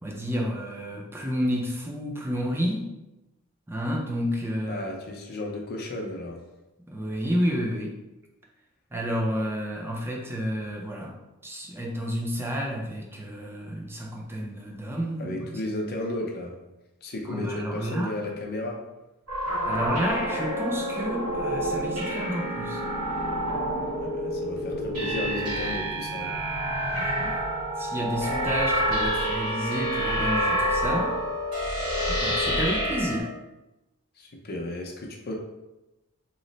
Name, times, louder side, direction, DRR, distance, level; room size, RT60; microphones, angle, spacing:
voice 1, 0.0-2.9 3.7-4.8 6.9-8.0 8.9-11.2 11.4-15.6 17.2-18.2 19.7-22.8 26.9-31.2 32.1-33.3, equal, 10° right, -1 dB, 0.4 m, -30 dB
voice 2, 4.7-6.4 15.2-16.6 17.0-18.8 24.0-26.3 34.2-35.3, left 1 dB, 45° left, 1 dB, 0.6 m, -34 dB
sound 1, 19.3-33.2, equal, 90° right, 1.3 m, -28 dB
3.1 x 2.0 x 3.9 m, 0.98 s
head